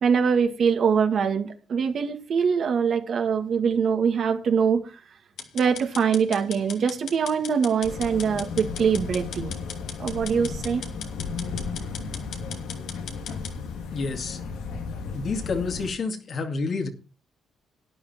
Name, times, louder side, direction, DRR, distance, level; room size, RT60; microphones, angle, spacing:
voice 1, 0.0-4.8 5.5-9.6 10.0-10.8, right 6 dB, 60° right, 2.0 m, -23 dB
sound 1, 5.4-13.5, left 7 dB, 75° left, 2.4 m, -39 dB
sound 2, 7.8-15.9, left 4 dB, 90° left, 2.4 m, -34 dB
voice 2, 13.9-14.4 15.1-16.9, left 4 dB, 50° left, 2.4 m, -29 dB
12.0 x 9.9 x 4.4 m
cardioid pair, 90°, 0 cm